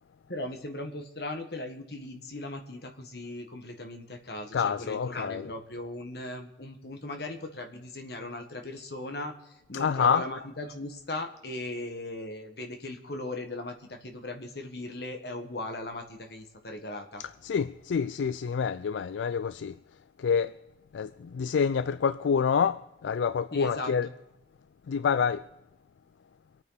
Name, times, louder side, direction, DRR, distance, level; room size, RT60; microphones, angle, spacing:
voice 1, 0.3-17.2 23.5-24.1, left 2 dB, 60° left, 1.7 m, -38 dB
voice 2, 4.5-5.4 9.7-10.2 17.2-19.8 20.2-20.5 20.9-24.1 24.9-25.5, left 6 dB, 80° left, 0.4 m, -27 dB
25.0 x 9.2 x 4.0 m
head